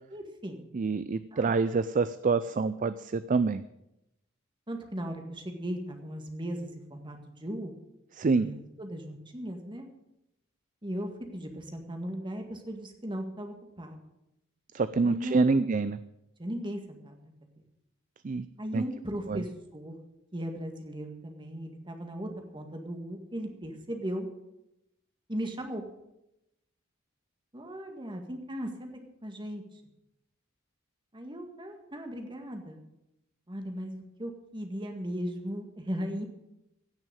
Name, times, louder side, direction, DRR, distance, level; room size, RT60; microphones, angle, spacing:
voice 1, 0.1-0.6 1.3-1.5 4.7-7.7 8.4-9.9 10.8-14.0 15.0-15.5 16.4-17.3 18.6-19.9 20.3-24.3 25.3-25.8 27.5-28.9 29.2-29.6 31.1-32.8 33.5-36.3, equal, 25° right, 4 dB, 1.9 m, -37 dB
voice 2, 0.7-3.6 8.2-8.5 14.7-16.0 18.2-18.5 18.7-18.8 19.3-19.4, right 4 dB, 40° right, 14 dB, 0.4 m, -26 dB
16.5 x 6.3 x 9.0 m, 0.87 s
head